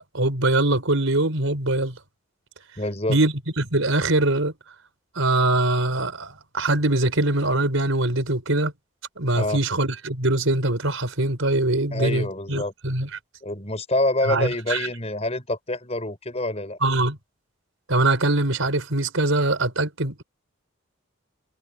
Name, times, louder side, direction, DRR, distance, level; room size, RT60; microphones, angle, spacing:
voice 1, 0.0-2.0 3.1-4.5 5.1-8.7 9.2-13.1 14.3-14.9 16.8-17.2 17.9-20.2, right 2 dB, 80° right, 4.2 m, -23 dB
voice 2, 2.8-3.2 9.3-9.6 11.9-12.7 13.4-16.8, left 1 dB, 30° left, 6.0 m, -26 dB
head